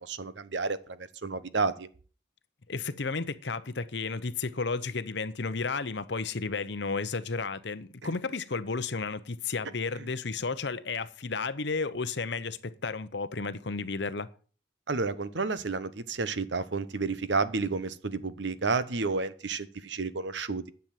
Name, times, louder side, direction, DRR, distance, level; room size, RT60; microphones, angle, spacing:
voice 1, 0.0-1.9 10.0-10.1 14.9-20.7, right 4 dB, 70° right, 0.9 m, -31 dB
voice 2, 2.7-14.3, left 4 dB, 65° left, 0.8 m, -33 dB
10.5 x 7.0 x 7.6 m
head